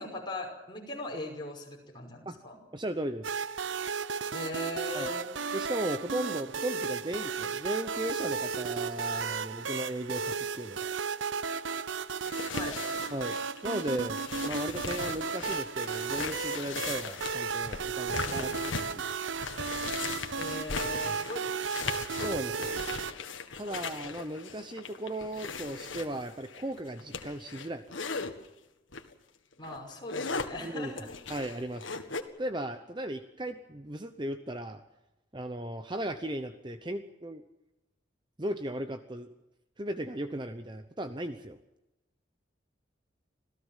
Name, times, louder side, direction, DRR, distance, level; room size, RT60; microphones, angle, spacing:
voice 1, 0.0-2.6 4.3-5.3 12.5-12.8 20.4-21.8 29.6-31.1, left 2 dB, 25° left, 0 dB, 5.5 m, -39 dB
voice 2, 2.7-3.3 4.9-5.1 5.5-10.9 13.1-13.4 13.6-19.1 21.0-21.2 22.2-22.8 23.6-27.8 30.6-30.9 31.3-31.8 32.4-34.8 35.3-37.4 38.4-39.3 39.8-41.6, right 1 dB, 25° right, 9 dB, 0.9 m, -36 dB
sound 1, 3.2-23.1, right 5 dB, 75° right, 0.7 m, -34 dB
sound 2, 12.2-28.3 28.9-29.1 29.5-32.2, left 4 dB, 85° left, 1.8 m, -39 dB
26.5 x 16.5 x 7.4 m, 0.95 s
head